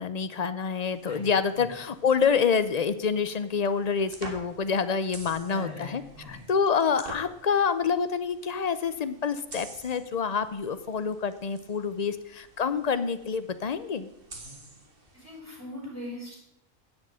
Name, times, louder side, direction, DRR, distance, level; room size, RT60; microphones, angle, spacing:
voice 1, 0.0-6.0 6.3-14.1, left 6 dB, 45° left, 13 dB, 0.6 m, -27 dB
sound 1, 0.9-15.4, right 2 dB, 40° right, 2.1 m, -49 dB
voice 2, 5.5-6.4 15.1-16.4, left 1 dB, 10° left, -4 dB, 4.7 m, -40 dB
11.0 x 6.5 x 8.8 m, 0.84 s
omnidirectional pair, 1.4 m